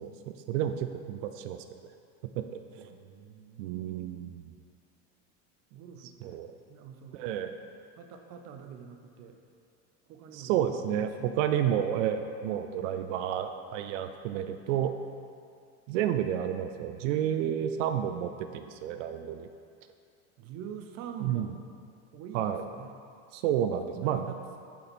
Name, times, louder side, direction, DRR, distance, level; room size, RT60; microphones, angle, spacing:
voice 1, 0.0-1.8 2.3-2.9 3.6-4.5 6.2-6.5 7.1-7.5 10.3-14.9 15.9-19.5 21.2-21.5 22.3-22.6 23.3-24.2, right 10 dB, 90° right, 8 dB, 0.5 m, -31 dB
voice 2, 2.7-3.9 5.7-6.4 6.7-7.2 8.0-9.4 10.1-11.6 20.4-21.6 22.1-23.0 23.9-24.6, right 7 dB, 45° right, 5 dB, 0.6 m, -45 dB
8.4 x 4.4 x 4.2 m, 2.4 s
supercardioid pair, 135°, 36 cm